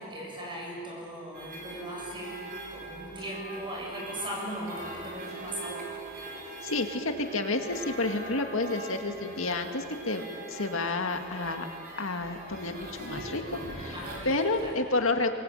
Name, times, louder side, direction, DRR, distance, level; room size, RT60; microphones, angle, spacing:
voice 1, 0.0-2.4 2.7-5.9 13.9-14.3 14.6-14.7, right 1 dB, 25° right, -2 dB, 7.7 m, -38 dB
sound 1, 1.3-14.7, right 2 dB, 45° right, 4.5 m, -42 dB
voice 2, 6.4-11.7 12.0-15.3, left 2 dB, 70° left, 5 dB, 2.0 m, -30 dB
23.5 x 23.0 x 9.1 m, 2.7 s
head